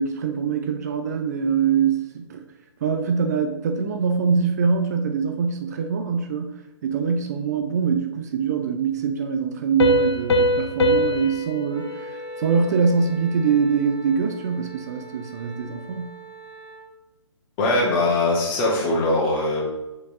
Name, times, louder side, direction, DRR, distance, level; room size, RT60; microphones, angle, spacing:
voice 1, 0.0-2.4 2.8-6.5 6.8-16.1, right 6 dB, 35° right, 6 dB, 0.5 m, -23 dB
Piano, 9.8-13.2, left 1 dB, 60° left, 0.8 m, -23 dB
Wind instrument woodwind instrument, 11.7-16.9, right 4 dB, 10° right, 1.3 m, -43 dB
voice 2, 17.6-19.6, left 2 dB, 25° left, -4 dB, 1.9 m, -21 dB
6.8 x 4.9 x 3.6 m, 1.0 s
figure-of-eight pair, 140°, 16 cm